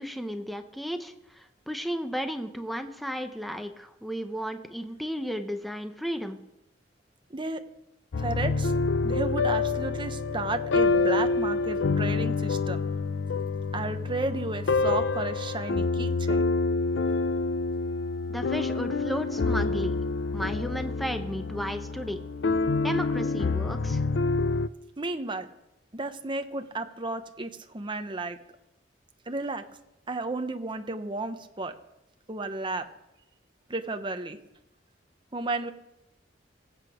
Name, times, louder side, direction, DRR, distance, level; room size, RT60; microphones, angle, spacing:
voice 1, 0.0-6.4 18.3-20.0 20.3-22.2 22.8-24.0, equal, ahead, 7 dB, 0.8 m, -34 dB
sound 1, 8.1-24.7, left 3 dB, 80° left, 0.5 m, -27 dB
voice 2, 8.2-8.7 9.0-12.8 13.7-16.4 25.0-25.5 25.9-28.4 29.3-29.6 30.1-31.7 32.3-32.9 33.7-34.4 35.3-35.7, right 2 dB, 25° right, 7 dB, 1.0 m, -33 dB
22.0 x 8.2 x 5.1 m, 0.90 s
head